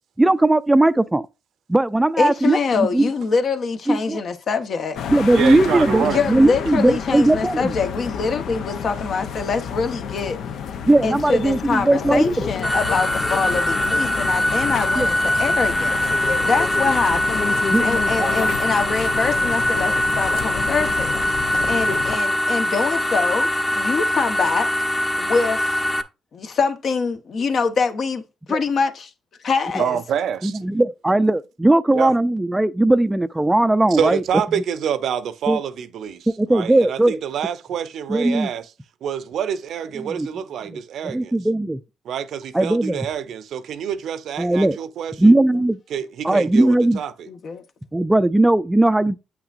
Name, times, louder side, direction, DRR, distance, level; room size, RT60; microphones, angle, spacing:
voice 1, 0.2-1.3 1.7-3.1 3.9-4.2 5.1-7.7 10.9-12.5 15.0-15.1 17.7-17.9 18.2-18.3 28.5-28.6 30.4-34.2 34.6-34.7 35.5-35.6 36.4-37.2 38.1-38.5 40.0-40.3 40.7-40.8 41.0-41.8 42.5-43.1 44.4-44.8 45.2-45.8 46.2-47.0 47.9-49.2, right 2 dB, 10° right, 0.4 m, -18 dB
voice 2, 2.2-5.0 6.0-10.4 11.0-24.7 25.2-25.8 26.3-28.2 28.5-29.1 29.4-30.0 47.3-47.6, left 5 dB, 55° left, 1.0 m, -24 dB
sound 1, 4.9-22.2, left 7 dB, 75° left, 0.7 m, -30 dB
voice 3, 5.3-6.3 15.3-15.4 21.6-22.0 29.8-30.7 31.9-32.1 33.9-38.7 39.0-41.3 42.0-45.3 45.9-47.3, right 8 dB, 70° right, 0.7 m, -27 dB
sound 2, 12.6-26.0, left 1 dB, 15° left, 0.8 m, -22 dB
8.2 x 5.9 x 2.5 m
cardioid pair, 90°, 0 cm